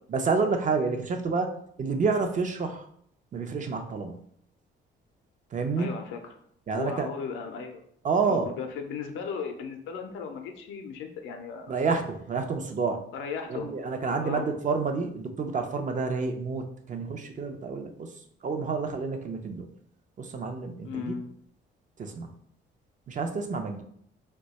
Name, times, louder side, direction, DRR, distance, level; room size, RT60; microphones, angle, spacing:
voice 1, 0.1-2.8 3.3-4.2 5.5-5.9 6.7-7.1 8.0-8.5 11.7-13.0 13.5-18.1 18.4-19.7 20.2-21.1 22.0-22.3 23.1-23.8, right 4 dB, 40° right, 5 dB, 0.5 m, -29 dB
voice 2, 5.7-6.3 6.7-7.8 8.2-11.7 13.1-13.7 14.2-14.6 20.8-21.3, left 6 dB, 90° left, 4 dB, 0.5 m, -36 dB
2.7 x 2.2 x 4.0 m, 0.66 s
cardioid pair, 90°, 20 cm